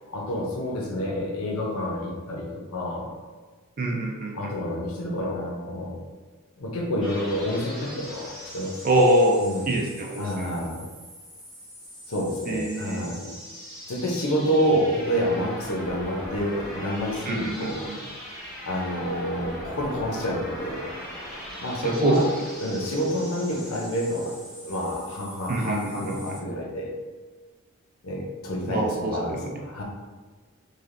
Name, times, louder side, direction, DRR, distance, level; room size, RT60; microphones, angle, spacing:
voice 1, 0.1-3.2 4.3-6.0 6.6-9.0 9.4-9.8 10.2-10.8 12.1-13.2 13.9-17.9 18.6-20.9 21.6-22.3 22.6-24.4 24.6-27.0 28.0-29.8, equal, 75° left, -1 dB, 0.6 m, -28 dB
voice 2, 3.8-4.6 8.8-10.5 12.5-13.1 17.2-18.0 21.8-22.2 25.5-26.4 28.7-29.4, right 1 dB, 40° right, 0 dB, 0.4 m, -25 dB
sound 1, 7.0-26.4, equal, ahead, 0.7 m, -40 dB
3.2 x 2.4 x 2.5 m, 1.3 s
head